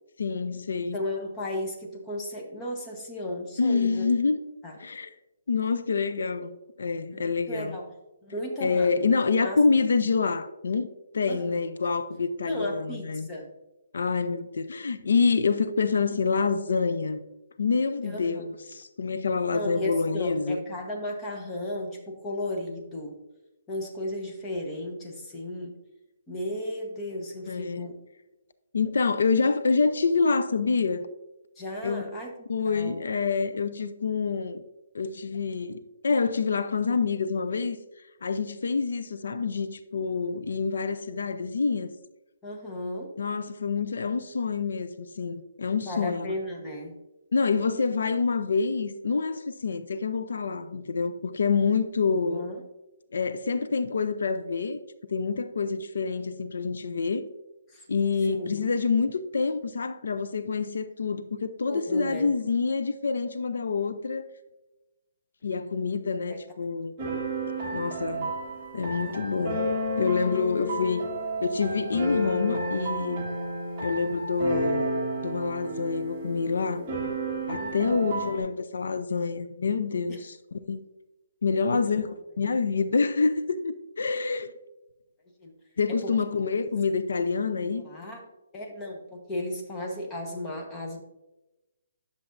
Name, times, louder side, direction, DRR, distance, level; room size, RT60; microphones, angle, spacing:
voice 1, 0.2-1.0 3.6-4.4 4.8-5.1 5.5-7.8 8.6-10.9 11.1-13.3 13.9-17.2 17.6-20.6 27.5-27.9 28.7-31.1 31.8-32.0 32.5-34.6 34.9-37.8 38.2-41.9 43.2-46.3 47.3-52.5 53.1-54.8 55.1-57.2 57.9-64.3 65.4-66.9 67.7-68.3 68.7-69.7 70.0-71.1 71.4-73.3 73.8-74.9 75.2-76.9 77.5-80.8 81.4-82.1 82.4-84.5 85.8-87.8, left 4 dB, 75° left, 0.5 m, -27 dB
voice 2, 0.9-4.1 4.6-4.7 7.1-7.9 8.2-8.9 9.4-9.6 11.3-11.6 12.5-13.5 18.1-18.4 19.5-23.2 23.7-25.7 26.3-27.9 31.6-32.3 32.6-33.0 42.4-43.1 45.9-47.0 52.3-52.6 57.7-57.8 58.3-58.6 61.7-62.3 66.3-66.4 68.0-68.4 69.0-69.2 77.6-78.1 80.1-80.2 81.7-81.8 85.4-85.5 86.0-86.1 87.7-88.3 88.5-91.0, left 1 dB, 10° left, 1.0 m, -35 dB
sound 1, 67.0-78.4, right 1 dB, 15° right, 1.5 m, -31 dB
9.9 x 6.9 x 2.6 m
hypercardioid pair, 170°, 0 cm